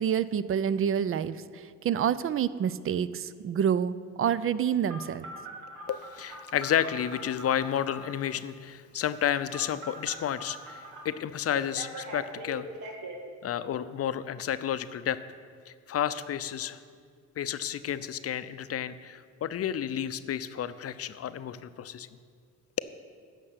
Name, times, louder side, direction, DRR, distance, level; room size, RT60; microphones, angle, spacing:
voice 1, 0.0-5.3, right 8 dB, 45° right, 16 dB, 0.5 m, -28 dB
Telephone, 4.9-8.2 9.5-11.0 11.5-13.2, right 1 dB, 90° right, 1.7 m, -42 dB
voice 2, 5.9-12.6 13.4-15.2 15.7-16.8 17.4-22.1, left 10 dB, 50° left, 13 dB, 0.5 m, -31 dB
9.9 x 6.6 x 8.1 m, 2.1 s
cardioid pair, 90°, 30 cm